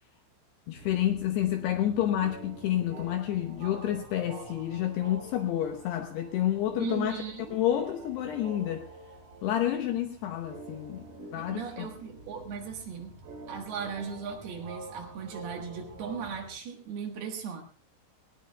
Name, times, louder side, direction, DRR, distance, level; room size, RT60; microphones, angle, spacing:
voice 1, 0.7-7.2 7.5-8.9 9.4-11.9, left 11 dB, 80° left, 2.5 m, -29 dB
sound 1, 0.7-16.5, right 2 dB, 45° right, 6.1 m, -47 dB
voice 2, 6.8-7.6 11.4-13.1 13.5-17.6, right 6 dB, 65° right, 3.1 m, -37 dB
19.5 x 19.0 x 2.3 m
omnidirectional pair, 5.6 m